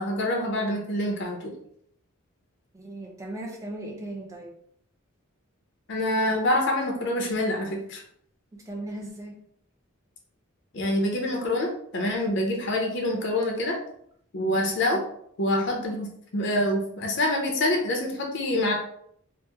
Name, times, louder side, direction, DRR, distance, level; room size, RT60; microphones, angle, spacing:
voice 1, 0.0-1.5 5.9-8.0 10.7-13.8 14.3-15.0 15.4-18.7, left 1 dB, 55° left, 1 dB, 0.6 m, -26 dB
voice 2, 2.7-4.6 8.5-9.4 14.6-14.7, right 1 dB, 15° right, 0 dB, 0.4 m, -37 dB
2.9 x 2.0 x 3.3 m, 0.68 s
head